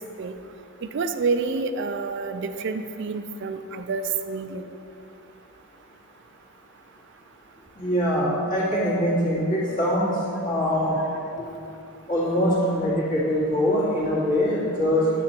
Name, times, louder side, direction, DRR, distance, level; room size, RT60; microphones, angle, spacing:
voice 1, 0.9-4.7, right 4 dB, 55° right, 8 dB, 0.4 m, -28 dB
voice 2, 7.8-10.1 10.4-10.9 12.1-15.0, equal, 40° left, -7 dB, 2.3 m, -23 dB
9.5 x 7.1 x 4.4 m, 2.6 s
head